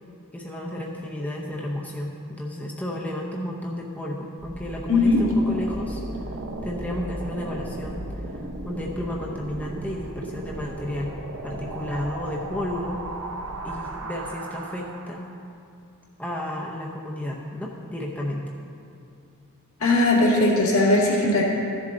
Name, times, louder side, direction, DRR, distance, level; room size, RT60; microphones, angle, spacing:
voice 1, 0.3-11.1 11.4-13.0 13.6-15.3 16.2-18.4, left 1 dB, 5° left, -2 dB, 0.7 m, -32 dB
sound 1, 4.4-15.3, right 2 dB, 55° right, 0.9 m, -35 dB
voice 2, 4.9-5.2 19.8-21.4, left 2 dB, 65° left, -4 dB, 2.1 m, -19 dB
14.0 x 7.2 x 3.9 m, 2.6 s
head